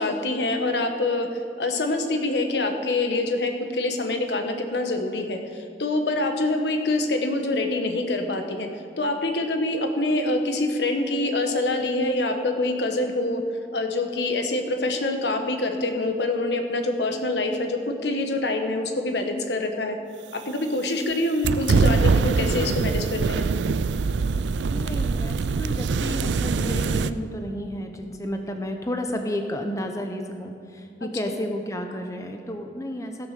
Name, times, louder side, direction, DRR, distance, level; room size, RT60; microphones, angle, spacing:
voice 1, 0.0-8.7 9.0-13.4 13.7-20.0 20.5-23.4, left 2 dB, 75° left, 5 dB, 1.2 m, -25 dB
sound 1, 21.4-27.1, right 4 dB, 85° right, 0.4 m, -23 dB
voice 2, 24.7-33.3, equal, 20° left, 4 dB, 0.8 m, -32 dB
16.0 x 6.3 x 6.7 m, 2.5 s
head